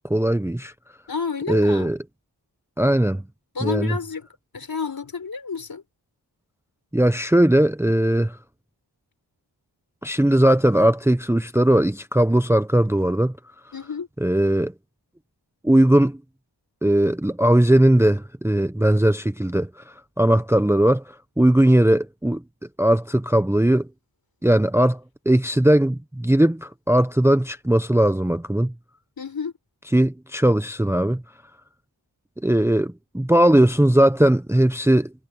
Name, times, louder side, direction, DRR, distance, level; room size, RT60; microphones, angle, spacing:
voice 1, 0.1-0.7 1.5-2.0 2.8-3.2 3.6-3.9 6.9-8.4 10.0-13.3 14.2-14.7 15.6-16.2 16.8-19.7 20.2-21.0 21.4-22.4 22.8-23.9 24.4-25.0 25.3-28.7 29.9-31.2 32.4-35.1, right 1 dB, 5° right, 0.9 m, -18 dB
voice 2, 1.1-1.9 3.5-4.3 4.5-5.8 13.7-14.1 29.2-29.5, left 5 dB, 55° left, 4.2 m, -30 dB
cardioid pair, 65°, 43 cm